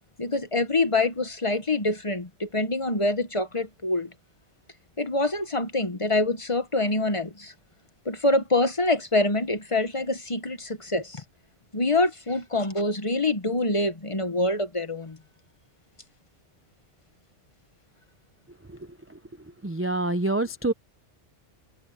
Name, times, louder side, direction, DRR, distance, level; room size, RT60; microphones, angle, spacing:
voice 1, 0.2-4.1 5.0-7.5 8.0-11.2 11.7-15.2, left 2 dB, 25° left, 1.2 m, -25 dB
voice 2, 19.6-20.7, right 2 dB, 15° right, 0.5 m, -26 dB
omnidirectional pair, 1.2 m